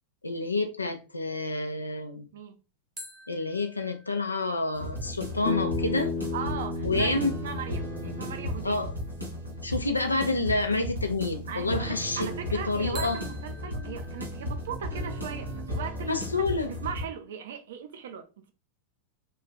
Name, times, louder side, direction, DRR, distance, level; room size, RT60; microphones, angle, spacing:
voice 1, 0.2-2.3 3.3-6.1 6.8-7.4 8.6-8.9 9.6-13.2 16.1-16.7, left 2 dB, 80° left, 0.4 m, -28 dB
sound 1, 3.0-6.5 13.0-15.7, right 2 dB, 15° right, 0.8 m, -49 dB
sound 2, 4.7-17.0, left 1 dB, 90° right, 0.8 m, -35 dB
Bass guitar, 5.4-9.7, left 3 dB, 45° left, 0.7 m, -34 dB
voice 2, 6.3-8.8 11.5-18.5, right 7 dB, 60° right, 0.5 m, -38 dB
3.1 x 2.4 x 2.2 m
figure-of-eight pair, 90°, 0 cm